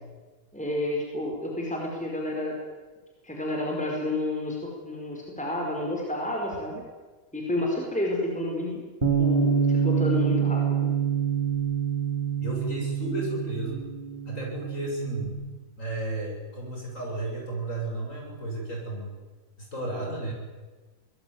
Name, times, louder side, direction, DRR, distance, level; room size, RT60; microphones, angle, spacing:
voice 1, 0.5-2.6 3.2-6.8 7.3-8.9 9.2-10.9, left 1 dB, 5° left, 0 dB, 4.9 m, -30 dB
Bass guitar, 9.0-15.3, right 7 dB, 20° right, 3.5 m, -26 dB
voice 2, 12.4-13.8 14.2-15.3 15.8-19.1 19.6-20.3, right 2 dB, 35° left, -1 dB, 8.0 m, -33 dB
24.0 x 20.0 x 9.5 m, 1.3 s
omnidirectional pair, 2.2 m